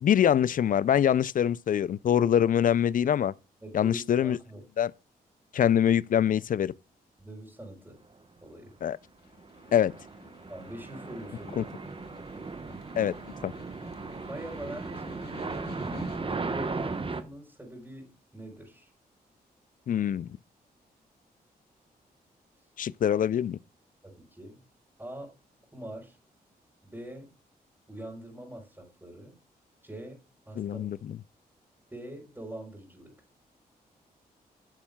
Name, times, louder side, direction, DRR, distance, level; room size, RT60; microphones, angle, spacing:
voice 1, 0.0-3.3 3.7-4.4 4.8-4.9 5.5-6.7 8.8-9.0 9.7-9.9 11.6-11.7 13.0-13.1 13.4-13.5 19.9-20.3 22.8-23.6 30.6-31.0, left 9 dB, 55° left, 0.4 m, -24 dB
voice 2, 3.6-4.6 7.2-8.0 8.4-8.7 10.5-11.8 14.3-18.9 24.0-24.6 25.0-25.3 25.7-26.2 26.8-27.3 27.9-29.4 29.8-30.8 31.9-33.1, right 1 dB, 15° right, 4.0 m, -43 dB
Snare drum, 9.0-16.5, left 6 dB, 90° left, 1.3 m, -52 dB
sound 1, 9.4-17.2, right 4 dB, 30° right, 1.1 m, -37 dB
10.0 x 6.9 x 2.3 m
cardioid pair, 60°, 17 cm